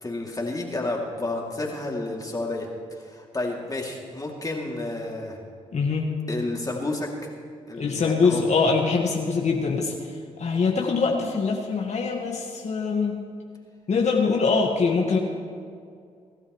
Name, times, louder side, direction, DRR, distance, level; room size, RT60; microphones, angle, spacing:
voice 1, 0.0-5.4 6.3-7.3 7.7-8.4, left 2 dB, 25° left, -2 dB, 2.9 m, -31 dB
voice 2, 5.7-6.1 7.8-13.2 13.9-15.2, left 4 dB, 55° left, 0 dB, 1.8 m, -23 dB
24.5 x 12.5 x 3.3 m, 2.2 s
supercardioid pair, 45°, 14 cm